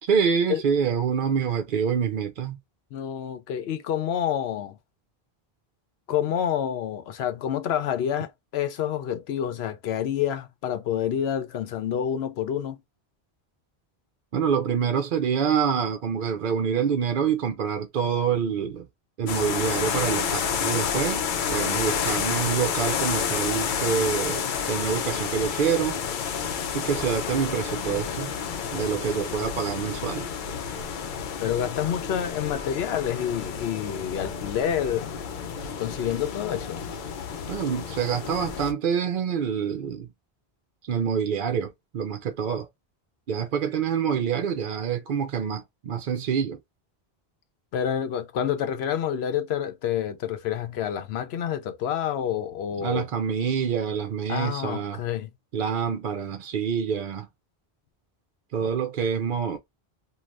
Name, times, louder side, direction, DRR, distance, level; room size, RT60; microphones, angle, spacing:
voice 1, 0.0-2.6 14.3-18.9 19.2-21.2 21.5-26.0 26.7-28.3 28.7-30.3 37.5-40.1 40.9-42.7 43.3-46.6 52.8-55.0 55.5-57.3 58.5-59.6, right 7 dB, 60° right, 0.6 m, -26 dB
voice 2, 2.9-4.8 6.1-12.8 31.4-35.2 35.8-36.8 47.7-53.1 54.3-55.3, left 9 dB, 85° left, 0.8 m, -28 dB
sound 1, 19.3-38.7, left 7 dB, 60° left, 0.7 m, -30 dB
3.2 x 2.3 x 2.4 m
omnidirectional pair, 1.0 m